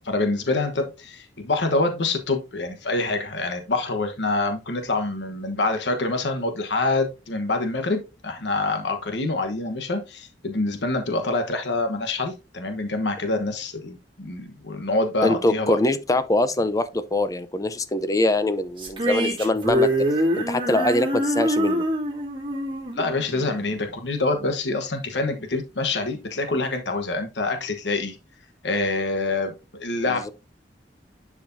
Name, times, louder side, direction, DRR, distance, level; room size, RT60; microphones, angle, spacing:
voice 1, 0.0-15.8 22.9-28.2 28.6-30.3, left 2 dB, 80° left, 1.2 m, -26 dB
voice 2, 15.2-19.9 20.4-21.8 30.1-30.3, left 2 dB, 20° left, 0.7 m, -23 dB
sound 1, 18.8-24.1, equal, 30° right, 2.7 m, -25 dB
10.5 x 5.0 x 2.7 m
head